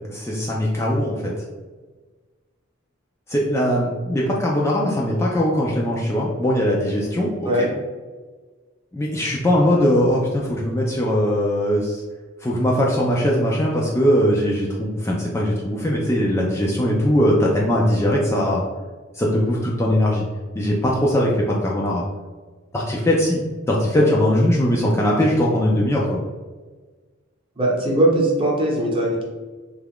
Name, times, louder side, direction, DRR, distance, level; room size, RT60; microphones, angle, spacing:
voice 1, 0.0-1.3 3.3-7.7 8.9-12.0 12.4-18.6 19.1-20.2 20.6-22.0 22.7-23.4 23.7-26.2, equal, 15° left, -4 dB, 0.3 m, -20 dB
voice 2, 27.6-29.2, right 1 dB, 25° right, -3 dB, 0.8 m, -20 dB
3.2 x 2.4 x 3.5 m, 1.4 s
head